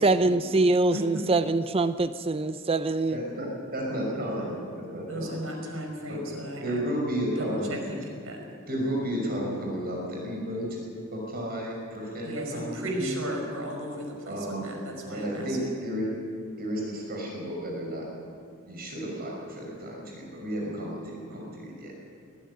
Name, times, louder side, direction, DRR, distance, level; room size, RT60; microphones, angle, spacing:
voice 1, 0.0-3.2, right 2 dB, 25° right, 12 dB, 0.5 m, -24 dB
voice 2, 0.9-1.2 5.1-7.0 7.3-8.4 12.2-15.6, equal, 80° right, 2 dB, 5.1 m, -35 dB
voice 3, 3.1-3.5 3.7-5.4 6.1-6.2 6.5-7.8 8.7-10.7 11.1-13.2 14.3-14.7 15.1-16.1 16.6-18.0 18.6-22.1, equal, 45° right, -1 dB, 5.8 m, -32 dB
21.0 x 15.5 x 9.7 m, 2.3 s
head